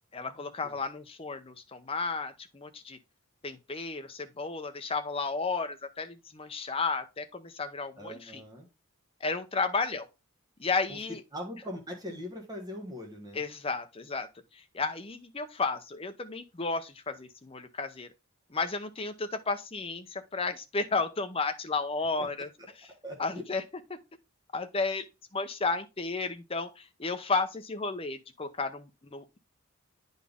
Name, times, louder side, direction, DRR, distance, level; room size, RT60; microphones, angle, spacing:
voice 1, 0.1-3.0 3.4-8.4 9.2-10.1 10.6-11.2 13.3-18.1 18.5-22.5 23.2-23.6 23.9-24.0 24.5-25.1 25.3-29.4, left 4 dB, 25° left, 0.7 m, -33 dB
voice 2, 8.0-8.7 10.9-11.0 11.3-13.4 22.2-22.3 22.9-23.4, left 1 dB, 20° right, 1.4 m, -41 dB
9.7 x 4.1 x 3.5 m
head